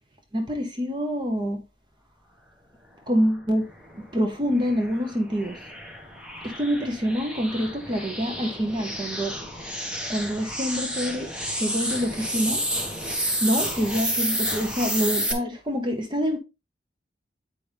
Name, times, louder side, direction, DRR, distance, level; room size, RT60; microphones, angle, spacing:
voice 1, 0.3-1.6 3.1-3.7 4.1-5.6 6.4-9.3 10.1-12.6 13.4-16.4, equal, 25° right, 0.9 m, -26 dB
sound 1, 3.8-15.3, equal, 5° right, 1.3 m, -30 dB
8.4 x 5.2 x 3.3 m
head